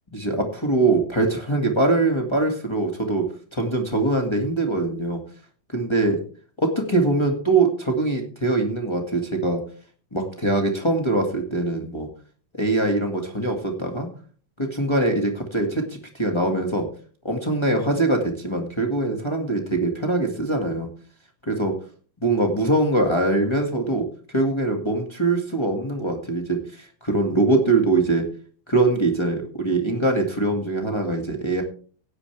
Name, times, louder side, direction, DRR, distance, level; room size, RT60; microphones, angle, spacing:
voice 1, 0.1-3.3 3.5-5.2 5.7-6.2 6.6-9.6 10.1-12.1 12.5-14.1 14.6-15.8 16.1-16.9 17.2-20.9 21.4-21.7 22.2-28.2 28.7-31.6, right 2 dB, 30° left, 1 dB, 0.5 m, -22 dB
16.5 x 9.5 x 3.3 m, 0.41 s
omnidirectional pair, 4.1 m